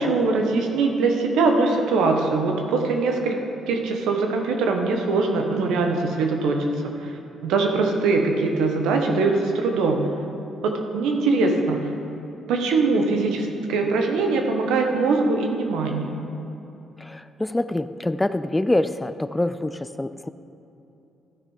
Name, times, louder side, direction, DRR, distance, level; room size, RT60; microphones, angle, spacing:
voice 1, 0.0-3.4 3.7-10.1 10.6-11.9 12.5-16.2, right 3 dB, 90° right, 3 dB, 1.1 m, -22 dB
voice 2, 17.0-20.3, left 1 dB, 10° left, 13 dB, 0.3 m, -25 dB
13.5 x 6.3 x 4.9 m, 2.9 s
cardioid pair, 90°, 0 cm